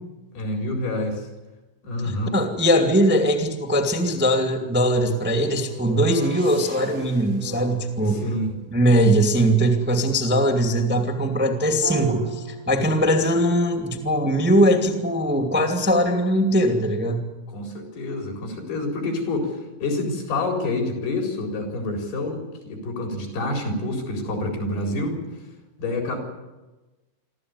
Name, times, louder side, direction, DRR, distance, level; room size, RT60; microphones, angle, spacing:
voice 1, 0.3-1.3 1.8-2.3 8.0-8.5 12.7-13.0 17.5-25.2 25.8-26.2, left 2 dB, 80° left, 2 dB, 6.2 m, -28 dB
voice 2, 2.0-8.2 8.7-17.3, equal, 5° right, 4 dB, 1.4 m, -21 dB
sound 1, 4.8-9.0 11.8-13.3 13.9-15.6, right 7 dB, 75° right, 4.2 m, -38 dB
26.0 x 13.5 x 9.7 m, 1.1 s
omnidirectional pair, 4.4 m